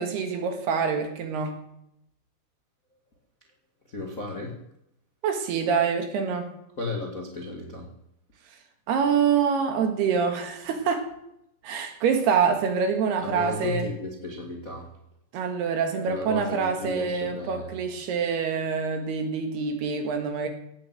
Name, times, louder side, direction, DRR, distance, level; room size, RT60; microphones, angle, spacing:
voice 1, 0.0-1.6 5.2-6.5 8.9-11.1 11.6-13.9 15.3-20.5, right 6 dB, 70° right, 5 dB, 3.6 m, -26 dB
voice 2, 3.9-4.6 6.8-7.9 11.7-11.8 13.2-14.9 16.1-17.7, left 2 dB, 40° left, 0 dB, 1.2 m, -34 dB
17.5 x 8.4 x 7.7 m, 0.78 s
omnidirectional pair, 5.2 m